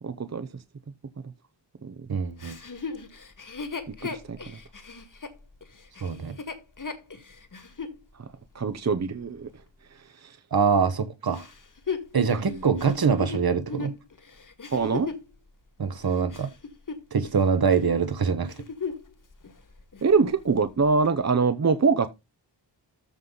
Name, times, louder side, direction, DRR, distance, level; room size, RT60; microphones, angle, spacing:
voice 1, 0.0-0.9 1.2-1.3 1.8-2.1 3.9-4.6 8.1-10.4 12.3-12.6 14.7-15.1 20.0-22.1, right 4 dB, 35° right, 0.8 m, -25 dB
voice 2, 2.1-2.6 6.0-6.4 10.5-11.5 12.1-13.9 15.8-16.5 17.1-18.5, right 6 dB, 55° right, 1.3 m, -24 dB
Chuckle chortle, 2.4-8.0 8.6-8.7 11.3-15.3 15.9-17.4 17.7-18.0 18.4-19.1 19.4-19.5 19.9-20.4 21.0-21.1, left 5 dB, 45° left, 1.9 m, -37 dB
13.5 x 5.6 x 3.9 m
wide cardioid pair, 110°, 44 cm